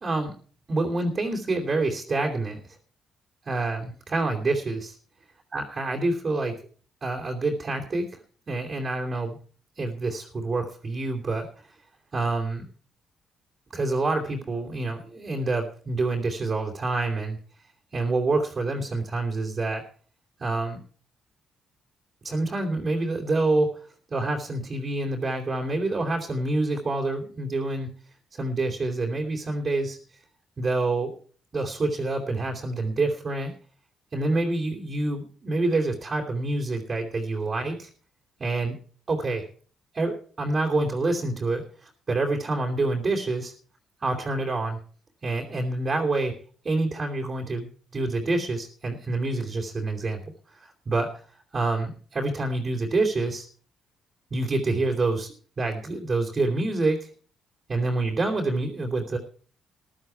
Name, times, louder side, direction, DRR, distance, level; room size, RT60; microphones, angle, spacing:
voice 1, 0.0-0.3 0.7-2.6 3.5-4.9 5.5-6.6 7.0-8.2 8.5-9.4 9.8-11.5 12.1-12.6 13.7-17.4 17.9-19.8 20.4-20.8 22.2-23.8 24.1-27.9 28.3-30.0 30.6-31.1 31.5-33.5 34.1-37.9 38.4-38.7 39.1-39.5 39.9-43.5 44.0-44.8 45.2-46.4 46.6-47.7 47.9-50.3 50.6-51.1 51.5-53.5 54.3-57.1 57.7-59.2, right 2 dB, 35° right, -1 dB, 3.0 m, -27 dB
14.5 x 11.5 x 4.6 m, 0.42 s
cardioid pair, 90°, 0 cm